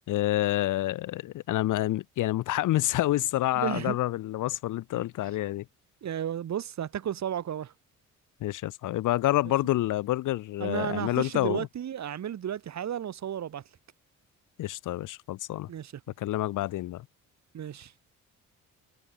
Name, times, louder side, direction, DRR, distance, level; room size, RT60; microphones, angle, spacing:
voice 1, 0.1-5.6 8.4-11.7 14.6-15.7 16.2-17.1, left 15 dB, 85° left, 3.9 m, -28 dB
voice 2, 3.5-4.0 6.0-7.7 10.6-13.6 15.7-16.0 17.5-17.9, right 9 dB, 65° right, 7.8 m, -33 dB
cardioid pair, 90°, 30 cm